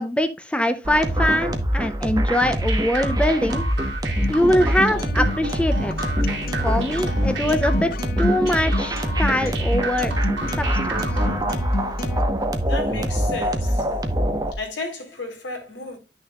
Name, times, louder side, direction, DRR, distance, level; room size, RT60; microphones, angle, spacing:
voice 1, 0.0-3.6 4.3-5.9 6.6-10.1 10.5-11.0, left 1 dB, 5° left, 0.5 m, -23 dB
sound 1, 0.8-14.5, equal, 20° right, 1.1 m, -24 dB
sound 2, 2.4-11.5, right 4 dB, 85° right, 2.5 m, -33 dB
Acoustic guitar, 4.2-12.2, left 3 dB, 55° left, 0.5 m, -32 dB
voice 2, 12.7-13.9 14.5-16.0, left 2 dB, 80° left, 3.2 m, -33 dB
11.0 x 6.4 x 2.3 m
head